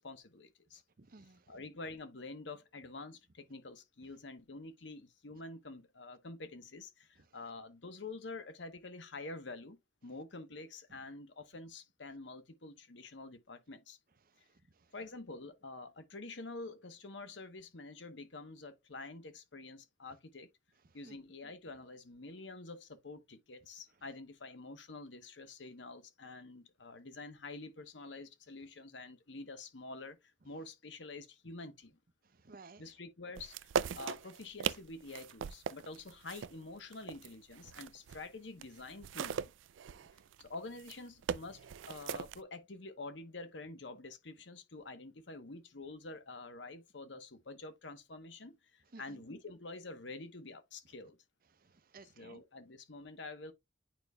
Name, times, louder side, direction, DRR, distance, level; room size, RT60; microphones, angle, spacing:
voice 1, 0.0-0.8 1.5-9.8 10.0-14.0 14.4-14.5 14.9-20.5 20.9-31.9 32.8-39.5 40.4-51.2 52.0-53.5, left 3 dB, 75° left, 1.0 m, -48 dB
voice 2, 1.0-1.4 21.0-21.1 32.4-32.8 40.0-40.1 48.9-49.2 51.7-52.4, right 3 dB, 50° right, 0.7 m, -55 dB
sound 1, 33.4-38.3 38.6-42.4, right 7 dB, 90° right, 0.4 m, -39 dB
8.9 x 5.1 x 2.3 m
head